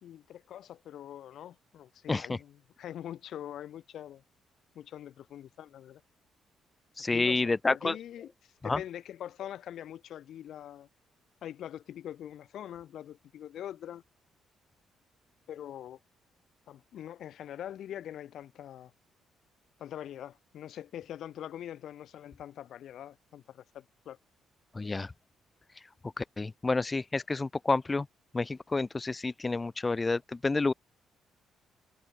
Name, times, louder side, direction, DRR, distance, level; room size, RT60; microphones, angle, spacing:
voice 1, 0.0-4.2 4.7-6.0 7.1-10.9 11.4-14.0 15.5-16.0 16.7-18.9 19.8-24.2, left 11 dB, 70° left, 3.2 m, -43 dB
voice 2, 2.1-2.4 7.0-8.0 8.6-8.8 24.7-25.1 26.2-28.1 28.3-30.7, left 3 dB, 20° left, 0.6 m, -29 dB
cardioid pair, 115°, 0 cm